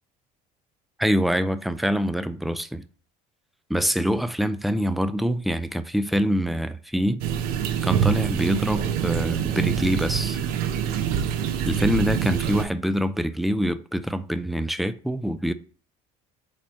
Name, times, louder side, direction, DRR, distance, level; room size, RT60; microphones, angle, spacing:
voice 1, 1.0-2.8 3.7-7.3 7.8-10.4 11.7-15.5, equal, ahead, 0.4 m, -25 dB
sound 1, 7.2-12.7, right 9 dB, 65° right, 0.9 m, -25 dB
8.6 x 3.0 x 5.4 m
cardioid pair, 160°, 16 cm